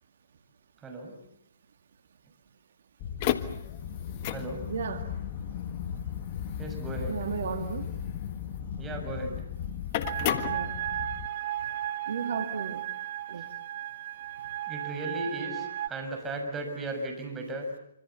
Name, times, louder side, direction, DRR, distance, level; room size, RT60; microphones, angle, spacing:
voice 1, 0.8-1.1 4.3-4.7 6.6-7.2 8.8-9.4 14.7-17.7, right 2 dB, 15° right, 3 dB, 6.6 m, -36 dB
sound 1, 3.0-11.3, left 10 dB, 35° left, 1.5 m, -34 dB
voice 2, 4.7-5.0 7.1-7.9 10.5-10.8 12.1-12.9 13.3-13.5, right 6 dB, 60° right, 7 dB, 2.3 m, -34 dB
sound 2, 10.0-15.9, right 12 dB, 45° right, 0.9 m, -35 dB
27.0 x 26.0 x 7.1 m, 0.78 s
hypercardioid pair, 140°, 0 cm